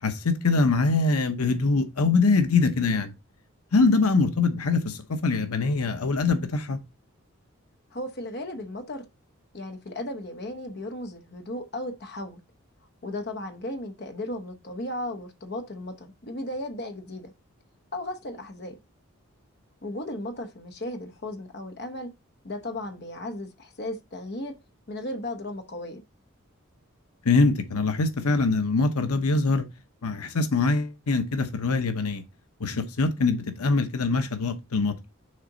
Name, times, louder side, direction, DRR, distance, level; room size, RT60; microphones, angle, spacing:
voice 1, 0.0-3.1 3.7-6.8 27.2-29.7 30.0-32.2 32.6-34.9, left 3 dB, 90° left, 0.9 m, -23 dB
voice 2, 7.9-9.1 9.5-12.4 13.0-17.3 17.9-18.8 19.8-22.1 22.4-24.6 24.9-26.0, left 1 dB, 50° left, 0.9 m, -35 dB
6.5 x 4.2 x 3.8 m
head